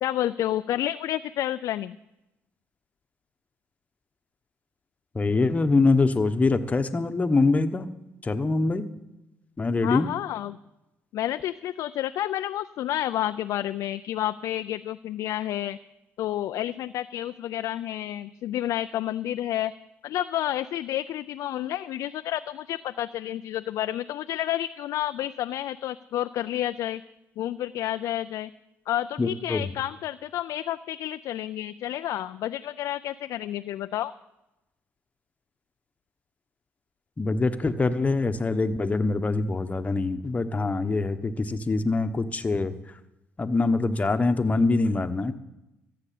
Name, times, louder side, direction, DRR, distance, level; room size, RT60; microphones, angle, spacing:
voice 1, 0.0-2.0 9.8-10.6 11.1-15.8 16.2-19.7 20.0-27.0 27.4-28.5 28.9-34.1, left 12 dB, 75° left, 10 dB, 0.4 m, -30 dB
voice 2, 5.1-7.9 8.2-8.9 9.6-10.1 29.2-29.7 37.2-42.7 43.4-45.3, left 3 dB, 25° left, 8 dB, 1.1 m, -24 dB
14.5 x 6.8 x 8.5 m, 0.94 s
cardioid pair, 80°, 6 cm